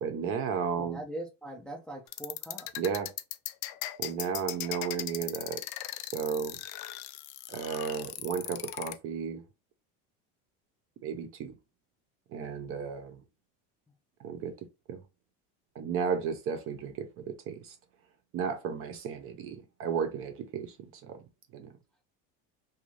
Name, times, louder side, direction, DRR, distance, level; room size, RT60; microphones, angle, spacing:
voice 1, 0.0-1.0 2.8-3.1 4.0-5.6 6.0-6.6 7.5-9.4 11.0-11.5 12.3-13.2 14.2-14.5 14.9-15.0 15.7-17.7 18.3-21.2 21.5-21.7, right 7 dB, 40° right, 0.6 m, -34 dB
voice 2, 0.8-2.7, right 1 dB, 5° left, 0.4 m, -41 dB
sound 1, 2.1-8.9, left 14 dB, 85° left, 0.5 m, -38 dB
2.6 x 2.3 x 3.0 m
cardioid pair, 145°, 33 cm